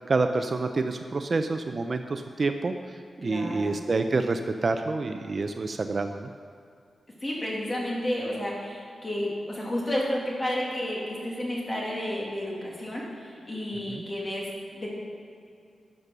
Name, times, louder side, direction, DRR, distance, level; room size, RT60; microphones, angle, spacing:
voice 1, 0.0-2.7 3.2-6.3 13.9-14.0, right 3 dB, 40° right, 7 dB, 0.5 m, -27 dB
voice 2, 3.2-3.8 7.2-15.0, left 1 dB, 25° left, -4 dB, 2.5 m, -31 dB
12.0 x 6.7 x 6.1 m, 2.4 s
wide cardioid pair, 155°, 0 cm